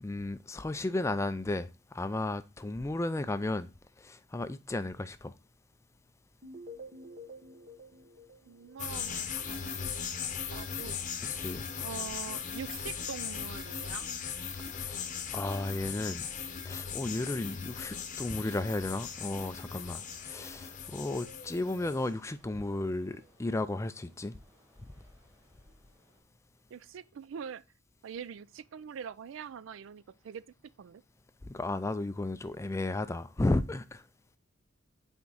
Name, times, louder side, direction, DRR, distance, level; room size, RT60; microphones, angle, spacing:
voice 1, 0.0-3.7 4.0-5.3 11.3-11.7 14.8-15.0 15.3-16.3 16.6-24.4 31.4-34.0, left 2 dB, 15° left, 0.3 m, -34 dB
sound 1, 6.4-9.4, equal, 40° right, 1.0 m, -49 dB
voice 2, 8.5-9.9 10.5-11.0 11.8-14.1 26.7-27.6 28.0-30.4 30.8-31.0, right 7 dB, 70° right, 0.3 m, -43 dB
sound 2, 8.8-22.1, left 7 dB, 40° left, 0.8 m, -38 dB
sound 3, 18.7-26.2, left 1 dB, 15° right, 2.2 m, -60 dB
6.0 x 4.4 x 3.9 m
head